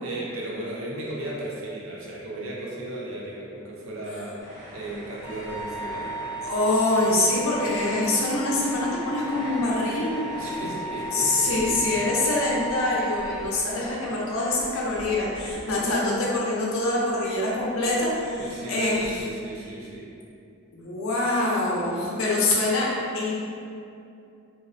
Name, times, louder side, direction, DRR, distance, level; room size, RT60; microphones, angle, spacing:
voice 1, 0.0-4.4 4.7-6.1 10.4-12.0 18.3-20.1, right 1 dB, 75° right, -4 dB, 0.5 m, -35 dB
sound 1, 4.4-16.3 16.6-19.2, equal, 50° right, 1.1 m, -43 dB
Wind instrument woodwind instrument, 5.2-13.4, right 1 dB, 20° left, 0.3 m, -35 dB
voice 2, 6.4-10.2 11.1-19.3 20.7-22.9 23.1-23.3, left 2 dB, 80° left, -4 dB, 0.5 m, -25 dB
2.5 x 2.0 x 2.4 m, 2.5 s
head